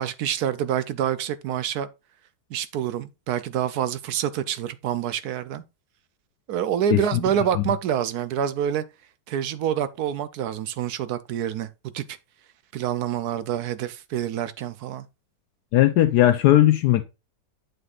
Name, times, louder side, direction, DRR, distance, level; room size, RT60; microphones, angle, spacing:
voice 1, 0.0-1.9 2.5-5.6 6.5-8.8 9.3-11.7 11.9-12.2 12.7-15.1, right 9 dB, 70° right, 1.0 m, -27 dB
voice 2, 15.7-17.0, left 13 dB, 75° left, 1.1 m, -17 dB
7.9 x 7.7 x 2.4 m
omnidirectional pair, 1.8 m